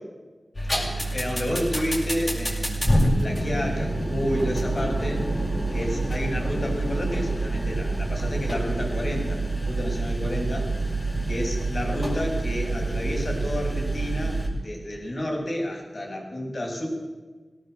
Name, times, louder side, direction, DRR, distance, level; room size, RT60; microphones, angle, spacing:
sound 1, 0.5-14.5, right 2 dB, 35° left, 6.6 m, -27 dB
voice 1, 0.8-5.2 5.7-9.4 9.7-10.7 11.3-16.9, equal, 50° left, 0 dB, 7.0 m, -30 dB
20.5 x 18.0 x 7.9 m, 1.3 s
wide cardioid pair, 80°, 0 cm